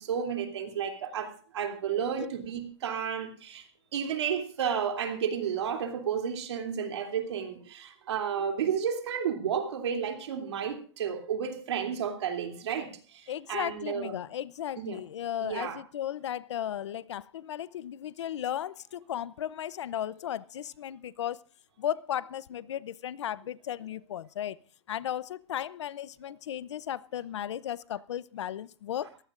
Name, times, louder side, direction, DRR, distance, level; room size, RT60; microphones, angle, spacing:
voice 1, 0.0-3.7 3.9-14.1 14.8-15.0 15.4-15.8, right 7 dB, 65° right, 2.9 m, -32 dB
voice 2, 13.3-21.4 21.8-24.6 24.9-29.1, left 10 dB, 75° left, 0.7 m, -35 dB
22.5 x 15.5 x 2.5 m
supercardioid pair, 180°, 15 cm